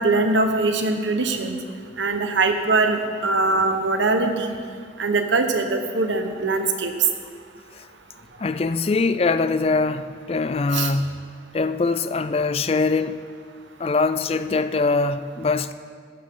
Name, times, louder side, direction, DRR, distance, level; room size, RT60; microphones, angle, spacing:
voice 1, 0.0-1.6 2.0-4.5 5.0-6.9 10.7-10.9, right 3 dB, 80° right, 1.2 m, -22 dB
voice 2, 8.4-11.2 11.5-13.2 13.8-15.7, left 3 dB, 30° left, 0.3 m, -22 dB
15.0 x 13.5 x 3.8 m
head